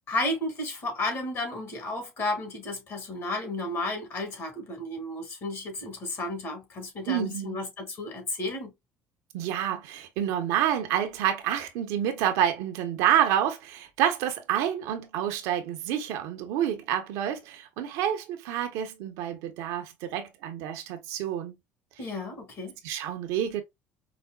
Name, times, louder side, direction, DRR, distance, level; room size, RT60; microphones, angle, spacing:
voice 1, 0.1-8.7 22.0-22.8, left 2 dB, 50° left, 1.9 m, -33 dB
voice 2, 7.1-7.6 9.3-21.6 22.8-23.6, right 10 dB, 75° right, 0.8 m, -28 dB
4.9 x 2.1 x 2.2 m
supercardioid pair, 75°, 6 cm